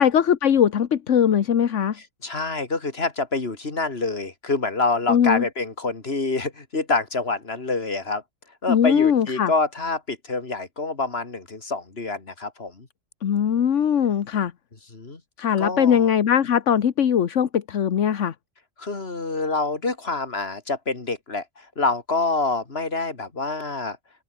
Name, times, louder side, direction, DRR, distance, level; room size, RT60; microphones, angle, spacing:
voice 1, 0.0-2.0 5.1-5.4 8.7-9.5 13.2-14.5 15.4-18.3, left 8 dB, 80° left, 1.4 m, -20 dB
voice 2, 2.0-8.2 8.6-12.9 14.9-15.2 15.6-16.1 18.8-24.0, left 3 dB, 55° left, 3.1 m, -26 dB
open air
omnidirectional pair, 1.3 m